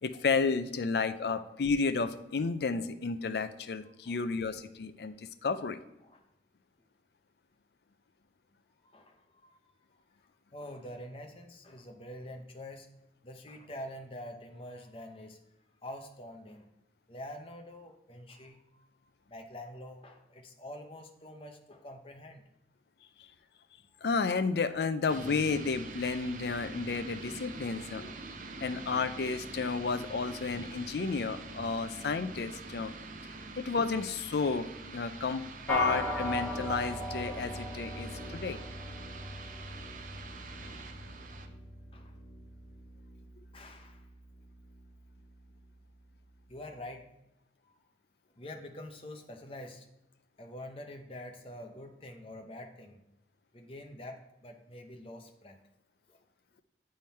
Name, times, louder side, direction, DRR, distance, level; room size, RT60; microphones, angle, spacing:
voice 1, 0.0-5.8 24.0-28.1 28.6-32.9 33.6-35.4 35.7-38.6, left 4 dB, 65° left, 12 dB, 0.4 m, -32 dB
voice 2, 8.9-9.7 10.5-12.9 13.2-15.4 15.8-16.7 17.1-18.9 19.3-22.4 23.9-24.0 28.1-28.2 30.4-30.5 39.7-39.9 41.0-41.5 41.9-42.1 43.5-44.1 46.5-47.1 47.6-47.8 48.4-49.9 50.4-53.0 53.5-55.6 56.1-56.2, left 1 dB, 30° left, 4 dB, 0.8 m, -46 dB
sound 1, 25.1-41.5, right 3 dB, 45° right, 0.6 m, -45 dB
sound 2, 35.7-45.2, equal, 10° left, 1.1 m, -39 dB
9.0 x 3.8 x 4.2 m, 0.89 s
head